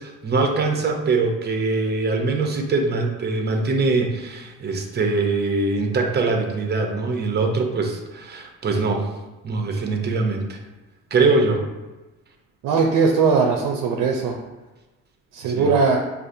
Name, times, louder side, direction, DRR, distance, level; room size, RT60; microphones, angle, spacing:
voice 1, 0.0-9.1 9.4-10.6 11.1-11.6 15.5-15.7, right 3 dB, 30° right, 3 dB, 0.7 m, -22 dB
voice 2, 12.6-14.4 15.3-16.0, right 5 dB, 75° right, 1 dB, 0.6 m, -19 dB
4.8 x 2.5 x 2.7 m, 1.1 s
supercardioid pair, 80°, 32 cm